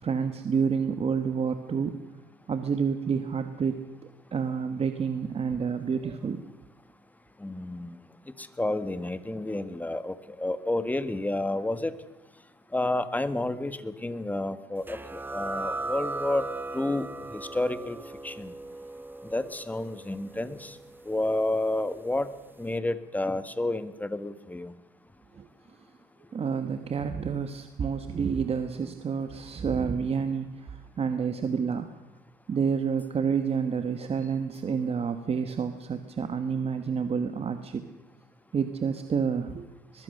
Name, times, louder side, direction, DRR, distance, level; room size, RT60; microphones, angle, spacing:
voice 1, 0.0-2.0 2.5-3.8 4.3-6.4 25.3-25.5 26.3-31.9 32.5-37.8 38.5-40.0, right 6 dB, 35° right, 9 dB, 1.4 m, -29 dB
voice 2, 7.4-8.0 8.4-11.9 12.7-16.4 16.7-18.0 18.2-18.5 19.3-20.8 21.0-22.3 22.6-24.7, left 2 dB, 10° left, 12 dB, 1.5 m, -30 dB
sound 1, 14.9-22.1, right 2 dB, 10° right, 1.1 m, -38 dB
22.5 x 21.0 x 6.6 m, 1.0 s
cardioid pair, 110°, 17 cm